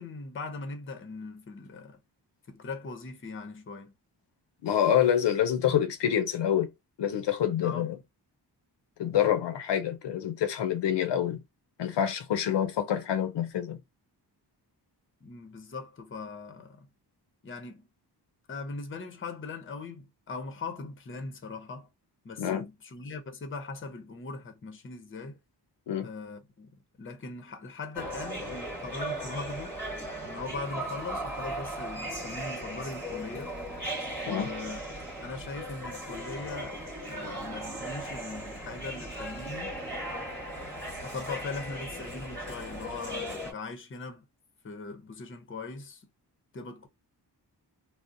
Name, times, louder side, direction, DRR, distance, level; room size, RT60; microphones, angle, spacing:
voice 1, 0.0-2.0 2.5-3.9 7.6-8.0 15.2-16.9 17.4-17.9 18.5-21.9 22.2-25.4 26.0-26.7 27.0-29.8 30.2-33.6 34.2-34.8 35.2-39.8 41.0-44.2 44.6-46.1 46.5-46.9, left 3 dB, 30° left, 0.6 m, -40 dB
voice 2, 4.6-6.7 7.0-7.9 9.0-11.4 11.8-13.8 22.4-22.7 25.9-26.1 34.3-34.5, left 9 dB, 85° left, 0.6 m, -27 dB
sound 1, 27.9-43.5, right 1 dB, 5° left, 1.1 m, -37 dB
3.6 x 2.0 x 2.5 m
wide cardioid pair, 150°, 41 cm